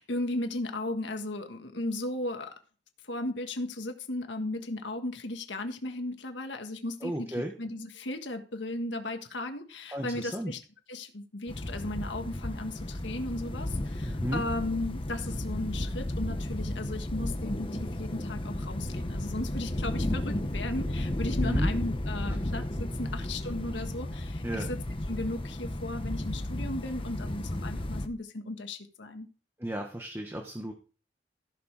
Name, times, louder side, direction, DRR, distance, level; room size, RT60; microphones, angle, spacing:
voice 1, 0.0-2.5 3.0-10.6 10.9-24.8 25.1-29.3, left 2 dB, 85° left, 6 dB, 1.6 m, -36 dB
voice 2, 7.0-7.5 9.9-10.5 14.0-14.4 21.4-21.7 22.7-23.0 24.4-24.7 29.6-30.7, equal, 15° right, 3 dB, 1.4 m, -34 dB
sound 1, 11.5-28.1, left 1 dB, 30° left, 1.0 m, -33 dB
15.0 x 6.7 x 4.9 m, 0.37 s
head